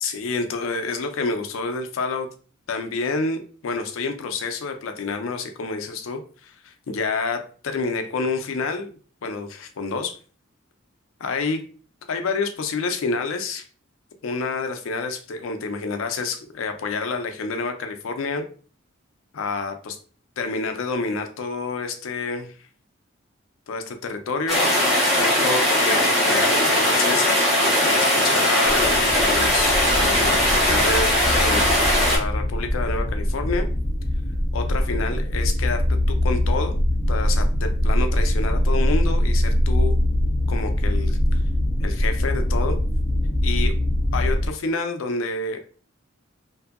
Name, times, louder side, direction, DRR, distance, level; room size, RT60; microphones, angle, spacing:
voice 1, 0.0-2.3 2.7-8.9 9.2-10.1 11.2-11.6 12.1-13.7 14.2-18.4 19.3-20.0 20.4-22.7 23.7-24.9 25.2-27.4 27.7-31.7 32.0-33.7 34.5-36.7 37.1-40.0 40.5-41.2 41.8-42.8 43.4-43.7 44.1-45.6, left 4 dB, 90° left, 6 dB, 0.5 m, -28 dB
sound 1, 24.5-32.2, left 1 dB, ahead, 1.0 m, -19 dB
sound 2, 28.7-44.5, left 1 dB, 20° left, 0.4 m, -23 dB
2.7 x 2.6 x 2.4 m, 0.40 s
head